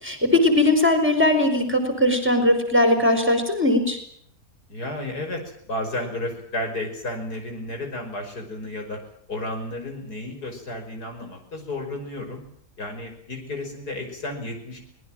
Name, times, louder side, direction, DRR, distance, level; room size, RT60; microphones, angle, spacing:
voice 1, 0.0-4.0, left 1 dB, 5° right, 7 dB, 4.3 m, -19 dB
voice 2, 4.7-9.0 9.3-12.4 12.8-14.8, left 1 dB, 75° left, 4 dB, 6.2 m, -32 dB
24.5 x 19.5 x 7.5 m, 0.66 s
omnidirectional pair, 1.7 m